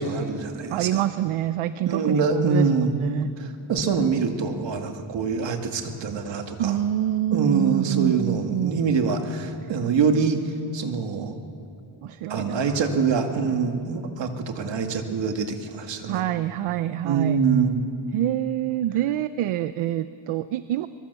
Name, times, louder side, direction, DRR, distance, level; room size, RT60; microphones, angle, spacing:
voice 1, 0.0-1.0 1.9-2.9 3.4-6.8 7.3-11.3 12.3-16.2 17.0-17.8, right 5 dB, 60° right, 4 dB, 2.4 m, -24 dB
voice 2, 0.7-3.3 6.6-8.8 12.0-13.0 16.1-17.4 18.1-20.9, right 12 dB, 80° right, 12 dB, 0.8 m, -26 dB
23.5 x 22.5 x 7.0 m, 2.6 s
cardioid pair, 130°, 49 cm